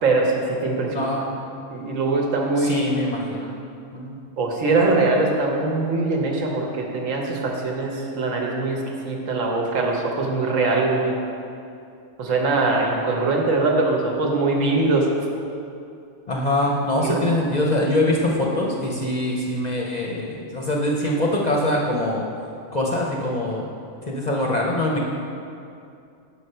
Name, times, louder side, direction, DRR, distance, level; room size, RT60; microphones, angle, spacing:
voice 1, 0.0-1.0 1.7-2.8 4.4-11.1 12.2-15.1 17.1-17.2, right 3 dB, 85° right, 0 dB, 1.3 m, -22 dB
voice 2, 0.9-1.4 2.6-3.6 3.9-4.2 16.3-22.3 22.7-23.7 24.0-25.0, left 1 dB, 45° left, -2 dB, 0.6 m, -23 dB
5.9 x 4.9 x 5.5 m, 2.5 s
omnidirectional pair, 1.3 m